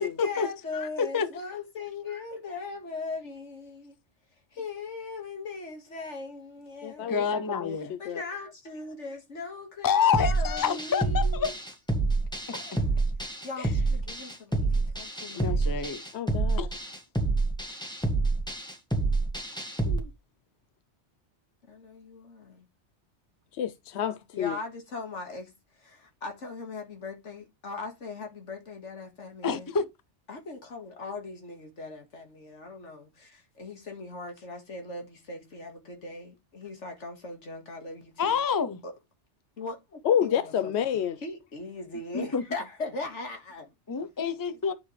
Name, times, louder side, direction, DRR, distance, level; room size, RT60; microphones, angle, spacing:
voice 1, 0.0-4.0 4.5-7.5 8.0-11.5 12.5-12.9 13.4-15.7 21.7-22.7 24.3-25.5 25.8-29.7 30.3-38.4 38.8-38.9 39.6-40.7 41.2-43.7 44.7-44.8, left 3 dB, 90° left, 2.3 m, -39 dB
voice 2, 0.7-1.3 7.1-8.0 9.8-11.5 13.6-13.7 15.3-16.0 16.6-16.7 19.8-20.1 29.4-29.9 38.2-38.8 42.1-42.4 43.9-44.7, left 6 dB, 20° left, 0.6 m, -28 dB
voice 3, 6.8-8.2 16.1-16.7 23.5-24.6 40.0-41.2, left 9 dB, 70° left, 0.9 m, -29 dB
sound 1, 10.1-20.0, right 3 dB, 5° left, 1.5 m, -28 dB
9.5 x 6.7 x 3.3 m
omnidirectional pair, 1.2 m